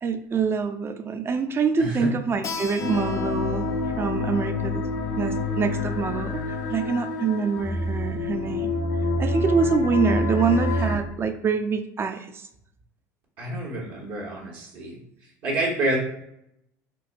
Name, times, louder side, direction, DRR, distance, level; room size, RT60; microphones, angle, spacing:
voice 1, 0.0-3.7 4.0-4.8 5.2-8.7 9.2-12.5, right 5 dB, 30° right, 8 dB, 0.4 m, -25 dB
voice 2, 1.8-2.1 13.4-15.0 15.4-16.0, right 1 dB, 65° right, -3 dB, 1.1 m, -28 dB
Keyboard (musical), 2.4-7.7, left 5 dB, 35° left, 0.4 m, -41 dB
sound 1, 2.8-11.0, left 2 dB, 75° left, 0.7 m, -27 dB
4.5 x 2.1 x 2.5 m, 0.77 s
hypercardioid pair, 80°, 9 cm